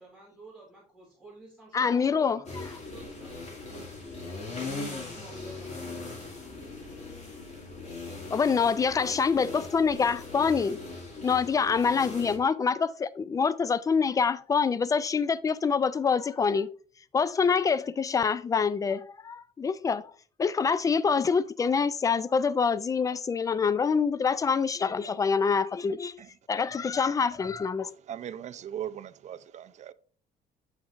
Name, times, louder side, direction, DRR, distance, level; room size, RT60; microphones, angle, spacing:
voice 1, 0.0-4.0 4.7-6.5, right 2 dB, ahead, 2.5 m, -51 dB
voice 2, 1.7-2.4 8.3-10.8 11.2-16.7 17.1-20.1 20.4-26.2 26.5-27.9, left 5 dB, 20° left, 0.4 m, -26 dB
sound 1, 2.5-12.4, left 3 dB, 40° left, 2.3 m, -40 dB
voice 3, 27.9-29.9, right 10 dB, 45° right, 0.5 m, -39 dB
7.2 x 6.1 x 2.5 m
cardioid pair, 110°, 17 cm